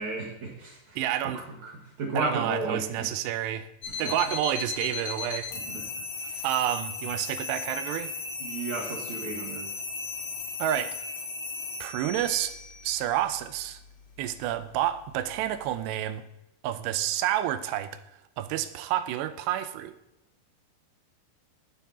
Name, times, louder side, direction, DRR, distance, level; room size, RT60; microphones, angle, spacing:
voice 1, 0.0-1.0 1.3-3.1 4.0-4.1 5.7-5.8 6.2-6.5 8.4-9.7, right 3 dB, 50° right, -4 dB, 2.8 m, -34 dB
voice 2, 1.0-1.4 2.1-3.7 4.0-5.5 6.4-8.1 10.6-11.0 11.8-12.5 12.8-13.8 14.2-16.2 16.6-18.0 18.4-19.9, right 12 dB, 80° right, 12 dB, 2.8 m, -29 dB
sound 1, 3.8-15.8, left 4 dB, 45° left, 2.1 m, -37 dB
16.0 x 7.0 x 4.3 m, 0.89 s
omnidirectional pair, 5.0 m